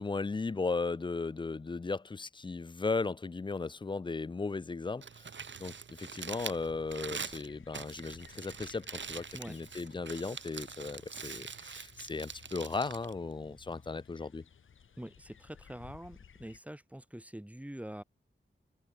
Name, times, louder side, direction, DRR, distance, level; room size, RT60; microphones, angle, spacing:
voice 1, 0.0-5.3 5.6-14.5, left 3 dB, 25° left, 0.4 m, -36 dB
Crumpling crinkling, 4.9-14.0, right 6 dB, 65° right, 1.1 m, -44 dB
sound 1, 6.4-16.6, left 7 dB, 80° left, 0.7 m, -58 dB
voice 2, 15.0-18.0, right 1 dB, 5° right, 1.4 m, -45 dB
open air
wide cardioid pair, 100°, 20 cm